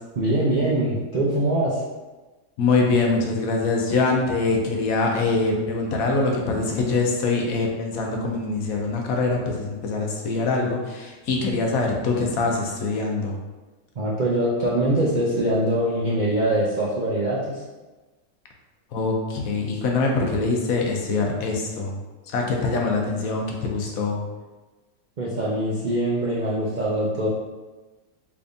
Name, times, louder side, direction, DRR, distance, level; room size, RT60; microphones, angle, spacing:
voice 1, 0.2-1.8 14.0-17.6 25.2-27.3, right 1 dB, 75° right, -7 dB, 0.4 m, -23 dB
voice 2, 2.6-13.3 18.9-21.9 22.3-24.2, left 3 dB, 70° left, 0 dB, 1.0 m, -24 dB
3.5 x 3.4 x 2.6 m, 1.2 s
omnidirectional pair, 1.6 m